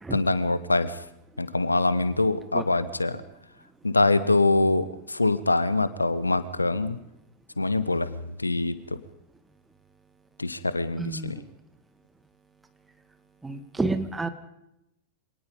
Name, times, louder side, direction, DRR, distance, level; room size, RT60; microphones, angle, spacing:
voice 1, 0.1-1.0 1.4-3.2 3.8-7.0 7.6-9.0 10.4-11.4, left 2 dB, 80° left, 15 dB, 1.2 m, -24 dB
voice 2, 11.0-11.5 13.4-14.3, right 3 dB, 10° right, 9 dB, 2.0 m, -30 dB
25.5 x 19.0 x 5.3 m, 0.84 s
figure-of-eight pair, 90°, 0 cm